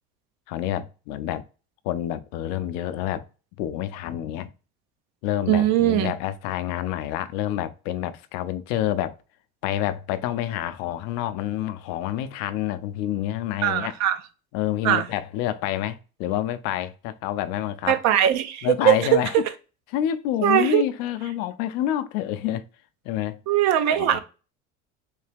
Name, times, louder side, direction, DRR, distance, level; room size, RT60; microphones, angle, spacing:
voice 1, 0.5-1.4 1.8-3.2 3.6-4.5 5.2-9.2 9.6-14.0 14.5-18.0 18.6-19.4 19.9-22.6 23.0-23.4 24.0-24.2, left 12 dB, 80° left, 0.5 m, -28 dB
voice 2, 5.5-6.1 13.6-14.2 14.8-15.1 17.9-19.2 20.4-20.8 23.5-24.2, right 11 dB, 65° right, 0.6 m, -20 dB
3.2 x 2.8 x 3.3 m
supercardioid pair, 80°, 30 cm